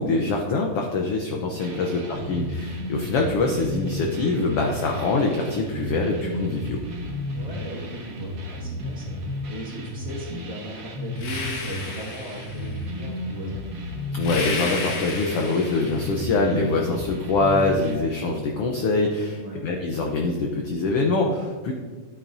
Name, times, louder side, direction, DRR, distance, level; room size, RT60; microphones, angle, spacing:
voice 1, 0.0-6.8 14.1-21.7, left 3 dB, 80° left, 1 dB, 1.3 m, -24 dB
sound 1, 1.6-18.0, left 1 dB, 70° right, 0.8 m, -33 dB
voice 2, 7.3-9.2 9.5-13.6 19.3-19.6, equal, 30° right, -6 dB, 2.0 m, -37 dB
sound 2, 11.2-12.8 14.2-16.3, left 3 dB, 55° left, 2.2 m, -33 dB
12.5 x 9.2 x 2.7 m, 1.4 s
omnidirectional pair, 3.7 m